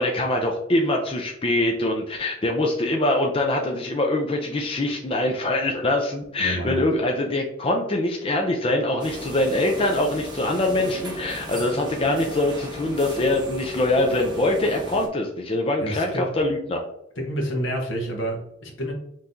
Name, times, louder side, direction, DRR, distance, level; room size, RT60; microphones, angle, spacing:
voice 1, 0.0-16.8, left 1 dB, 30° left, 1 dB, 0.5 m, -23 dB
voice 2, 6.4-6.9 15.8-16.3 17.1-18.9, equal, 70° left, 1 dB, 1.2 m, -28 dB
sound 1, 9.0-15.1, equal, 20° right, 1.1 m, -36 dB
5.6 x 3.1 x 2.6 m, 0.77 s
head